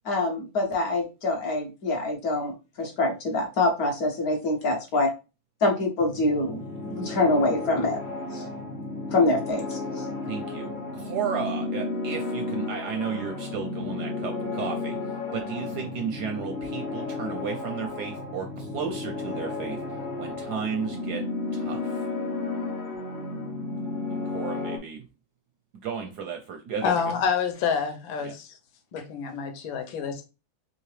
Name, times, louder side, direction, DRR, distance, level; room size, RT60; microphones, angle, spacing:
voice 1, 0.1-5.1 5.6-8.0 8.3-8.4 9.1-10.1, left 2 dB, 60° left, 1 dB, 1.1 m, -25 dB
sound 1, 6.0-24.8, left 3 dB, 40° left, 0.7 m, -33 dB
voice 2, 10.3-19.8 20.2-21.3 21.5-22.1 24.1-25.0 25.7-27.1 28.2-28.4, right 6 dB, 75° right, 4 dB, 0.9 m, -34 dB
voice 3, 26.8-28.5 28.9-30.2, left 6 dB, 75° left, 6 dB, 1.5 m, -27 dB
3.6 x 3.0 x 3.1 m, 0.30 s
omnidirectional pair, 2.2 m